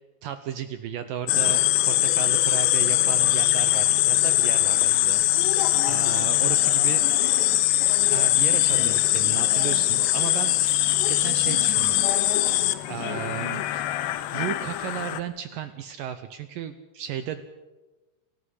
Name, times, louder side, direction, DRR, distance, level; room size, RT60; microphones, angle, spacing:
voice 1, 0.2-5.5 5.8-7.0 8.1-10.6 10.8-12.1 12.9-13.6 14.3-17.4, right 10 dB, 75° right, 10 dB, 2.1 m, -34 dB
sound 1, 1.3-15.2, left 14 dB, 90° left, 3.1 m, -22 dB
29.0 x 13.0 x 8.3 m, 1.2 s
omnidirectional pair, 4.8 m